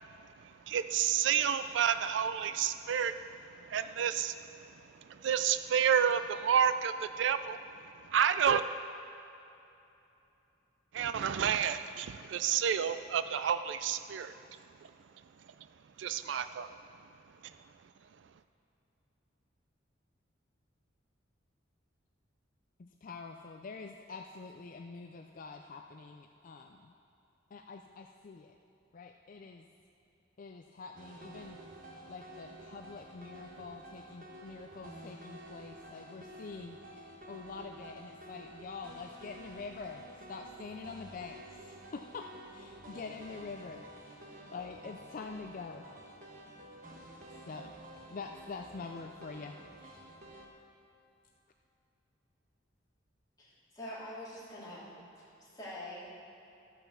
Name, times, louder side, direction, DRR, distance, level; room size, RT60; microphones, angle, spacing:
voice 1, 0.4-3.2 3.7-4.4 5.1-8.6 10.9-14.3 16.0-16.7, right 8 dB, 65° right, 12 dB, 0.4 m, -30 dB
voice 2, 22.8-26.9 27.5-28.5 28.9-29.7 30.4-31.6 32.1-37.0 37.3-40.0 40.3-45.9 47.5-47.7 48.1-50.1, left 4 dB, 45° left, 4 dB, 0.4 m, -46 dB
sound 1, 31.0-50.5, right 1 dB, 45° right, 1.3 m, -51 dB
voice 3, 53.4-54.9 55.4-56.2, left 1 dB, 20° left, -8 dB, 2.9 m, -45 dB
13.5 x 5.8 x 7.0 m, 2.9 s
head